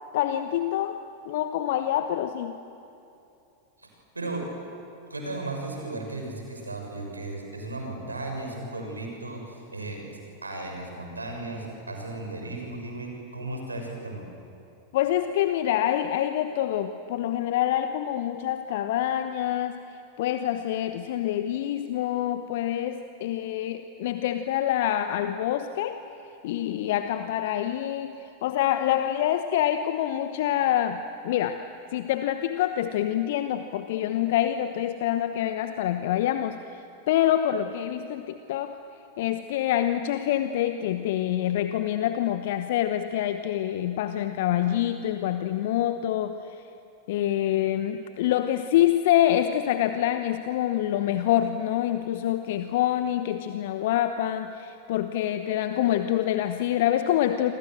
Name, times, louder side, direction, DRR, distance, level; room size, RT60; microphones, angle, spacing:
voice 1, 0.1-2.6 14.9-19.8 20.2-25.9 26.4-31.6 31.9-38.8 39.2-46.7 47.1-57.5, left 12 dB, 55° left, 9 dB, 1.0 m, -26 dB
voice 2, 3.8-4.4 5.1-10.1 10.4-14.2, right 2 dB, 80° right, 2 dB, 6.6 m, -35 dB
28.0 x 25.5 x 7.9 m, 2.8 s
figure-of-eight pair, 90°, 0 cm